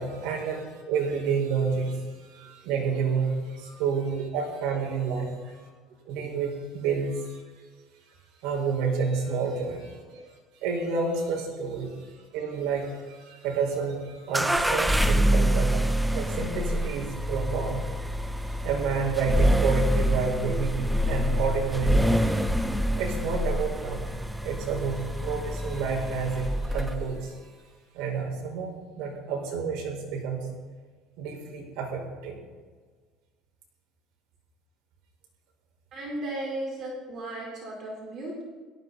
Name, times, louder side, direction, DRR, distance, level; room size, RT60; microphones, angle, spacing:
voice 1, 0.0-5.7 6.1-7.4 8.4-10.2 10.6-17.9 18.6-22.5 23.0-24.2 24.4-27.4 27.9-30.5 31.2-32.4, right 5 dB, 75° right, 0 dB, 5.2 m, -30 dB
sound 1, 14.3-27.2, equal, 5° right, 0.6 m, -26 dB
voice 2, 35.9-38.4, right 1 dB, 40° right, -2 dB, 4.5 m, -35 dB
17.5 x 14.5 x 4.2 m, 1.4 s
cardioid pair, 150°, 0 cm